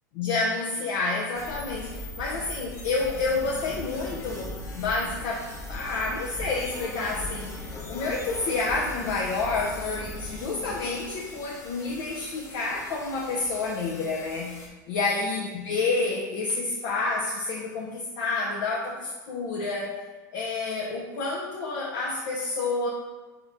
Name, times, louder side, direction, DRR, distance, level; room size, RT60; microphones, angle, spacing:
voice 1, 0.1-20.0 20.3-22.9, left 3 dB, 65° left, -3 dB, 0.7 m, -29 dB
sound 1, 1.3-14.7, left 1 dB, 25° left, 0.9 m, -39 dB
3.9 x 3.7 x 3.4 m, 1.3 s
hypercardioid pair, 100°, 10 cm